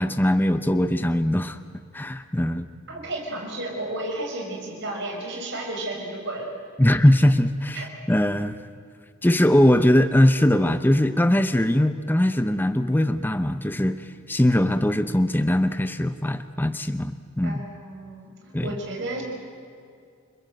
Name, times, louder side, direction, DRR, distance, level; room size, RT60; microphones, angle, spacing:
voice 1, 0.0-1.6 1.9-2.7 6.8-8.6 9.2-14.0 14.3-17.6 18.5-18.7, left 1 dB, 10° left, 11 dB, 0.6 m, -21 dB
voice 2, 2.9-6.5 7.7-7.9 17.4-19.2, right 2 dB, 55° right, 0 dB, 6.1 m, -32 dB
30.0 x 21.0 x 7.9 m, 2.3 s
head